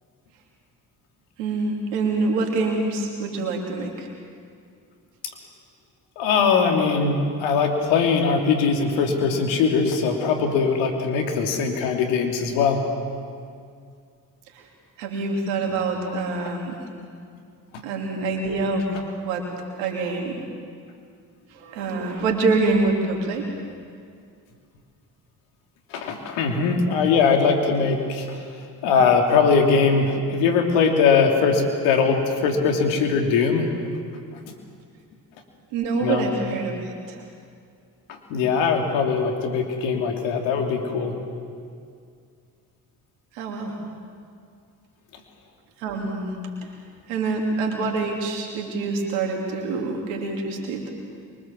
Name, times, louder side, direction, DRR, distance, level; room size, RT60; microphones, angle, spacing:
voice 1, 1.4-4.1 14.5-14.7 15.0-16.8 17.8-19.5 19.8-20.4 21.5-23.5 35.7-37.2 43.3-43.8 45.8-46.3 47.1-50.8, right 3 dB, 85° right, 1 dB, 3.4 m, -26 dB
voice 2, 6.2-12.8 17.7-17.8 25.9-28.4 28.8-33.7 34.3-34.5 36.0-36.2 38.1-41.1, left 5 dB, 80° left, 3 dB, 3.0 m, -21 dB
24.0 x 24.0 x 7.5 m, 2.2 s
hypercardioid pair, 45°, 45 cm